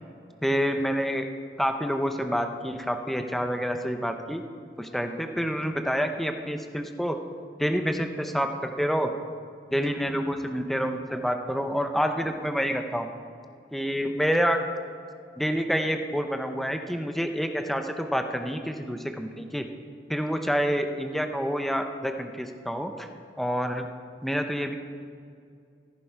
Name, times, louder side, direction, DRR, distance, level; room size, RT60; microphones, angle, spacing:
voice 1, 0.4-1.3 1.6-4.4 4.8-7.2 7.6-9.1 9.7-13.1 13.7-14.6 15.4-19.6 20.1-23.1 23.4-23.9 24.2-24.7, equal, ahead, 5 dB, 0.6 m, -28 dB
14.5 x 10.5 x 4.6 m, 2.3 s
head